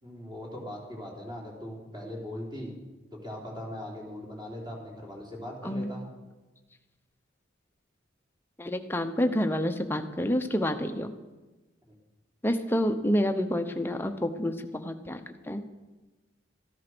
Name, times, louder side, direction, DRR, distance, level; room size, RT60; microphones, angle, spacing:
voice 1, 0.0-2.7 3.2-6.1, left 1 dB, 20° right, -2 dB, 3.4 m, -40 dB
voice 2, 8.6-11.1 12.4-15.2 15.5-15.7, equal, 10° left, 6 dB, 0.8 m, -28 dB
14.0 x 11.0 x 6.1 m, 1.2 s
head